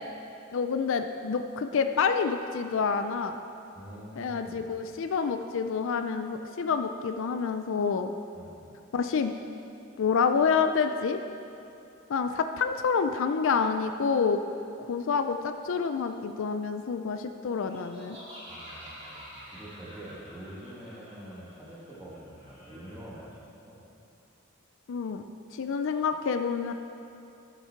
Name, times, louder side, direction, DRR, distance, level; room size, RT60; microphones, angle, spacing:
voice 1, 0.5-3.4 4.2-8.1 8.9-9.3 10.0-11.2 12.1-14.4 14.9-18.2 24.9-25.2 25.5-26.7, left 5 dB, 65° left, 8 dB, 0.4 m, -28 dB
voice 2, 3.7-4.7 8.3-8.6 18.5-23.4 23.6-23.8, right 1 dB, 10° right, -7 dB, 2.2 m, -45 dB
Laughter, 17.6-23.2, equal, 25° right, 2.7 m, -48 dB
13.5 x 7.3 x 4.5 m, 2.7 s
head